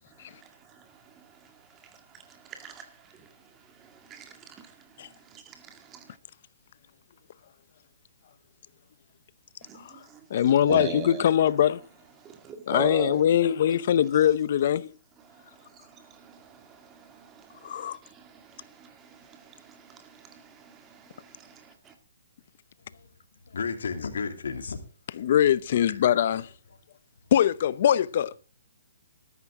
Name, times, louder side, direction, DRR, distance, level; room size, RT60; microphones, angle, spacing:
voice 1, 0.1-6.2 9.6-10.3 10.7-11.3 12.2-13.3 15.2-21.9, right 6 dB, 15° right, 2.1 m, -42 dB
voice 2, 10.3-11.8 12.7-14.9 17.6-18.0 25.2-26.5 27.3-28.3, left 10 dB, 50° left, 0.7 m, -22 dB
voice 3, 23.5-24.8 25.2-25.3 25.9-26.0, left 5 dB, 80° left, 2.6 m, -33 dB
13.5 x 13.0 x 3.7 m
hypercardioid pair, 160°, 0 cm